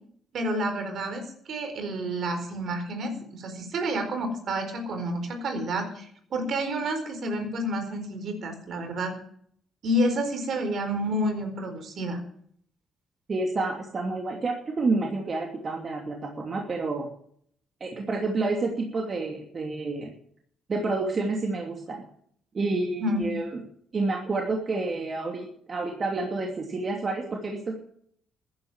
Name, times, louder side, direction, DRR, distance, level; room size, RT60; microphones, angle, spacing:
voice 1, 0.3-9.1 9.8-12.2 23.0-23.3, equal, 60° right, 6 dB, 4.5 m, -29 dB
voice 2, 13.3-17.1 17.8-20.1 20.7-22.0 22.5-23.6 23.9-27.8, right 3 dB, 40° right, 1 dB, 2.7 m, -29 dB
14.0 x 10.5 x 7.3 m, 0.64 s
cardioid pair, 90°, 0 cm